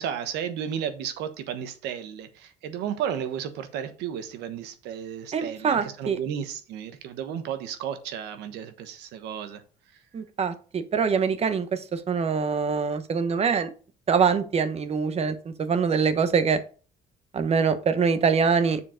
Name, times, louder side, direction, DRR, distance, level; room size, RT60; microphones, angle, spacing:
voice 1, 0.0-9.6, right 9 dB, 85° right, 1.2 m, -33 dB
voice 2, 5.3-6.2 10.1-13.7 14.1-16.6 17.3-18.8, right 6 dB, 40° right, 1.1 m, -24 dB
7.0 x 4.7 x 5.0 m
cardioid pair, 110°, 17 cm